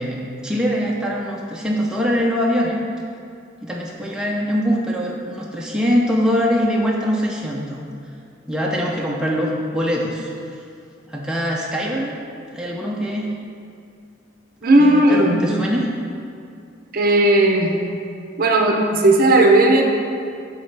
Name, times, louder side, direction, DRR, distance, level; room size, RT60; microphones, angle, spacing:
voice 1, 0.0-2.8 3.6-7.8 8.5-10.6 11.1-12.2 12.5-13.3 14.8-15.9, equal, 5° right, -3 dB, 0.5 m, -23 dB
voice 2, 14.6-15.5 16.9-17.7 18.4-19.8, right 1 dB, 50° right, 1 dB, 0.6 m, -15 dB
8.2 x 4.0 x 3.3 m, 2.4 s
head